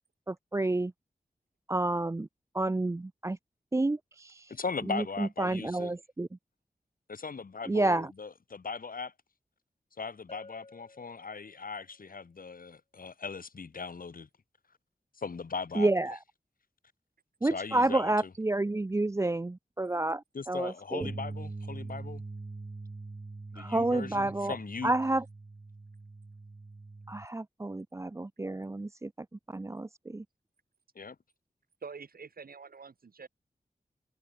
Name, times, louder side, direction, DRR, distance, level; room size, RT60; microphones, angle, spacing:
voice 1, 0.3-0.9 1.7-2.3 2.5-3.4 3.7-4.5 4.9-6.3 7.7-8.1 15.8-16.2 17.4-21.1 23.6-24.5 24.8-25.2 27.1-29.1 29.5-30.2, right 2 dB, 20° right, 0.5 m, -30 dB
voice 2, 4.5-5.9 7.1-9.1 10.0-14.3 15.2-15.9 17.4-18.3 20.3-22.2 23.5-24.9 31.0-31.2, left 5 dB, 70° left, 5.0 m, -39 dB
Bell, 10.3-11.9, left 3 dB, 45° left, 7.9 m, -53 dB
sound 1, 21.0-27.3, right 3 dB, 40° right, 4.5 m, -43 dB
voice 3, 31.8-33.3, right 5 dB, 85° right, 6.2 m, -46 dB
wide cardioid pair, 95°, 15 cm